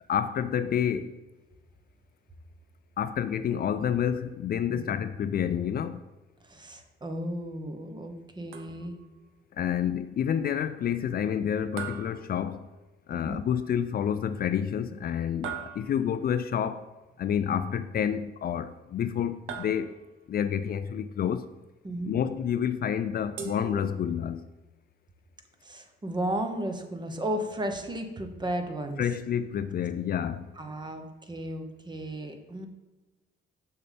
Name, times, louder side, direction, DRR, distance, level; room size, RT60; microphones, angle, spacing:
voice 1, 0.1-1.2 3.0-6.0 9.5-12.7 13.1-16.9 17.2-19.9 20.3-21.5 22.0-24.4 29.0-30.5, left 8 dB, 50° left, 11 dB, 0.4 m, -29 dB
voice 2, 6.4-9.0 13.1-13.4 21.8-22.2 25.6-29.0 30.6-32.7, right 1 dB, 20° right, 5 dB, 1.0 m, -34 dB
sound 1, 8.5-9.1 11.8-13.0 15.4-16.3 19.5-20.3 23.4-24.4, right 7 dB, 90° right, 0.8 m, -41 dB
6.9 x 6.7 x 3.4 m, 1.1 s
cardioid pair, 90°, 20 cm